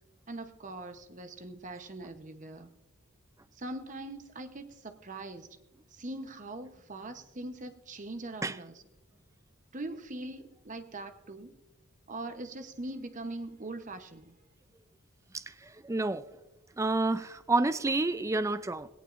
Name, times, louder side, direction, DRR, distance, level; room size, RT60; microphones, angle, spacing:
voice 1, 0.3-2.7 3.5-5.5 5.9-8.8 9.7-11.6 12.1-14.3, right 2 dB, 35° right, 8 dB, 0.9 m, -42 dB
voice 2, 15.8-16.2 16.8-18.9, right 2 dB, 15° right, 13 dB, 0.4 m, -29 dB
19.0 x 17.5 x 2.5 m, 1.1 s
head